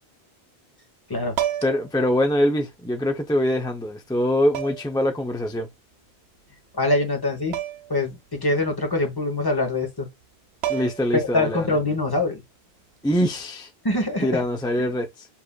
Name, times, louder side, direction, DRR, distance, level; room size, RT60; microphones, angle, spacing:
sound 1, 1.3-1.9 3.2-3.3 4.5-5.0 7.5-8.0 8.3-8.4 10.2-10.3 10.6-11.2 13.2-13.4, right 11 dB, 90° right, 0.8 m, -29 dB
voice 1, 1.6-5.7 10.7-11.8 13.0-13.7 14.2-15.3, left 1 dB, 5° left, 0.4 m, -23 dB
voice 2, 6.8-7.6 7.9-10.1 11.1-12.4 13.8-14.4, left 2 dB, 25° left, 0.9 m, -24 dB
7.2 x 2.5 x 2.2 m
omnidirectional pair, 1.0 m